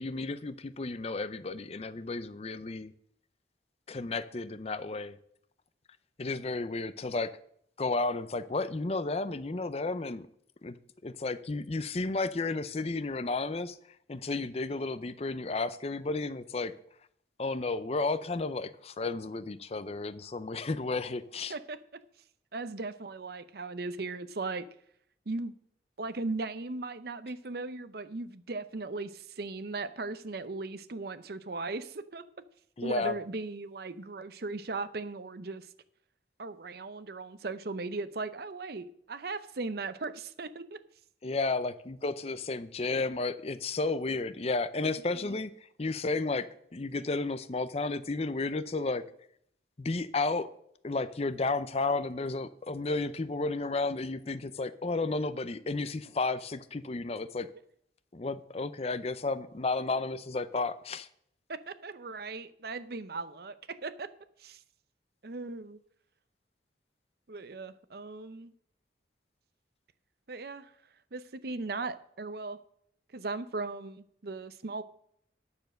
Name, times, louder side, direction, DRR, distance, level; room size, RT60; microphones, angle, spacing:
voice 1, 0.0-2.9 3.9-5.2 6.2-7.3 7.8-10.3 10.6-10.8 11.0-13.8 14.1-16.7 17.4-21.5 32.8-33.1 41.2-49.1 49.8-50.5 50.8-57.5 58.1-61.1, left 3 dB, 35° left, 0.5 m, -32 dB
voice 2, 21.5-22.0 22.5-24.7 25.3-25.5 26.0-32.2 32.8-35.7 36.4-40.8 45.1-45.4 61.5-64.1 64.4-64.6 65.2-65.8 67.3-68.5 70.3-70.7 71.1-72.6 73.1-74.8, right 3 dB, 55° right, 0.7 m, -38 dB
10.0 x 7.0 x 6.4 m
head